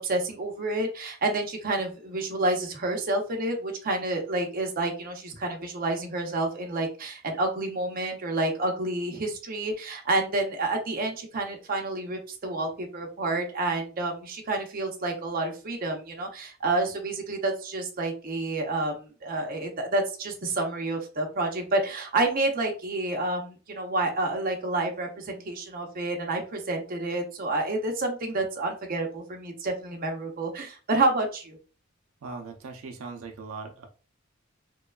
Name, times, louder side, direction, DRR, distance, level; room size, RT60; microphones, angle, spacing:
voice 1, 0.0-31.6, right 2 dB, 45° right, 2 dB, 0.6 m, -29 dB
voice 2, 32.2-33.9, right 4 dB, 90° right, 4 dB, 0.5 m, -39 dB
3.0 x 2.1 x 2.3 m, 0.35 s
head